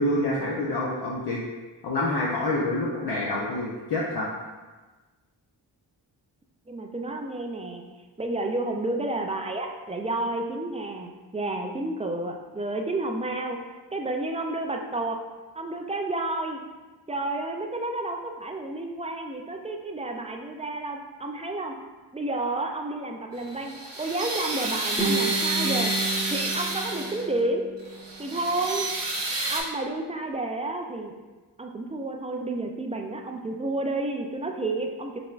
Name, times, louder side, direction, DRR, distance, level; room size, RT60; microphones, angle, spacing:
voice 1, 0.0-1.4 1.8-4.3, left 1 dB, 55° left, -5 dB, 0.7 m, -27 dB
voice 2, 6.7-7.8 8.2-13.6 13.9-15.2 15.5-16.6 17.1-21.7 22.1-25.9 26.3-27.7 28.2-28.9 29.5-31.2 31.6-35.2, right 2 dB, 15° right, 3 dB, 0.3 m, -30 dB
sound 1, 23.4-27.3 27.8-29.6, right 2 dB, 65° right, 1.1 m, -29 dB
Guitar, 25.0-28.0, right 3 dB, 10° left, 1.0 m, -31 dB
5.1 x 3.4 x 2.4 m, 1.3 s
cardioid pair, 85°, 45 cm